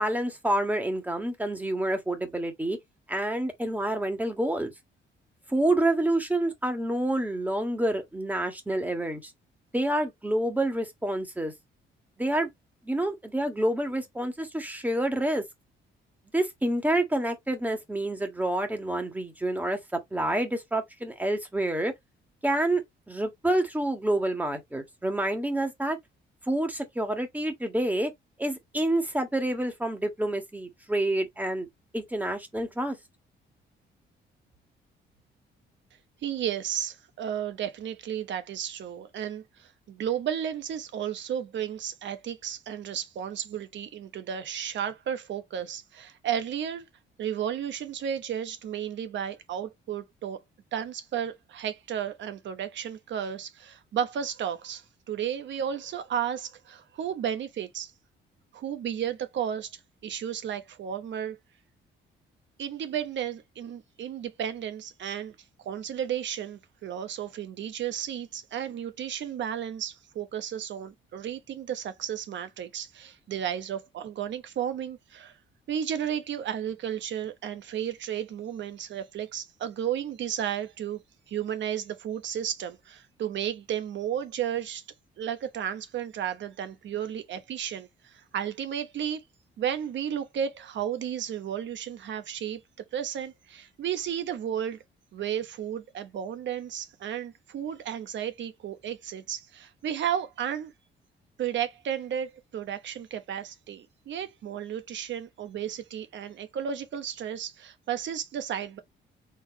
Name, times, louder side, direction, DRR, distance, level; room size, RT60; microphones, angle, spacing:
voice 1, 0.0-2.8 3.1-4.7 5.5-9.3 9.7-11.5 12.2-12.5 12.8-15.4 16.3-21.9 22.4-26.0 26.5-28.1 28.4-31.7 31.9-33.0, right 1 dB, 10° right, 1.6 m, -28 dB
voice 2, 36.2-46.9 47.2-50.4 50.7-57.9 58.5-61.4 62.6-65.3 65.6-75.3 75.7-81.0 81.3-84.8 85.2-89.2 89.6-92.6 92.9-94.8 95.1-100.7 101.4-108.8, right 9 dB, 65° right, 1.1 m, -33 dB
4.5 x 3.4 x 2.9 m
cardioid pair, 90°, 20 cm